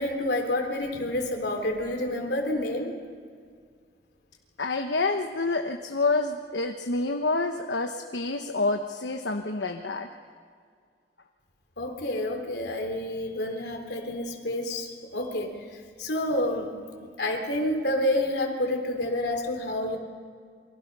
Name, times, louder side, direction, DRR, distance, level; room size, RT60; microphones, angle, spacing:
voice 1, 0.0-3.0 11.8-15.6 16.0-16.7 17.0-20.0, left 1 dB, 70° left, 2 dB, 3.6 m, -29 dB
voice 2, 4.6-10.1, left 3 dB, 85° left, 4 dB, 1.1 m, -28 dB
28.0 x 23.5 x 5.5 m, 2.1 s
head